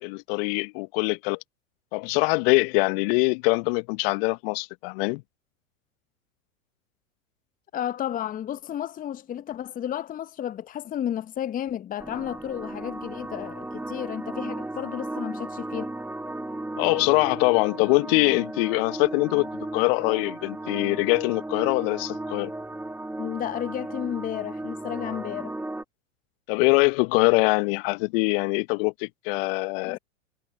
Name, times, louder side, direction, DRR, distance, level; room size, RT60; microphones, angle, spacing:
voice 1, 0.0-1.4 1.9-5.2 16.8-22.5 26.5-30.0, left 29 dB, 45° left, 1.0 m, -23 dB
voice 2, 7.7-15.9 23.2-25.6 29.9-30.0, left 10 dB, 20° left, 0.9 m, -32 dB
sound 1, 12.0-25.8, right 2 dB, 5° right, 2.1 m, -35 dB
figure-of-eight pair, 95°, 41 cm